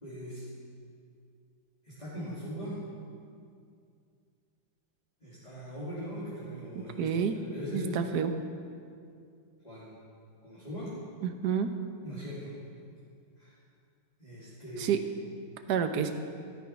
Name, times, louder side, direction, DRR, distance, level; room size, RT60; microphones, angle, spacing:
voice 1, 0.0-0.5 1.8-2.8 5.2-8.0 9.6-9.9 10.4-10.9 12.0-12.6 13.4-13.5 14.2-15.0 15.6-15.7, equal, 20° left, -9 dB, 3.1 m, -40 dB
voice 2, 6.7-7.4 7.7-8.3 11.2-11.7 14.8-15.0 15.7-16.1, right 8 dB, 60° right, 7 dB, 1.3 m, -29 dB
13.5 x 13.0 x 5.9 m, 2.3 s
omnidirectional pair, 2.3 m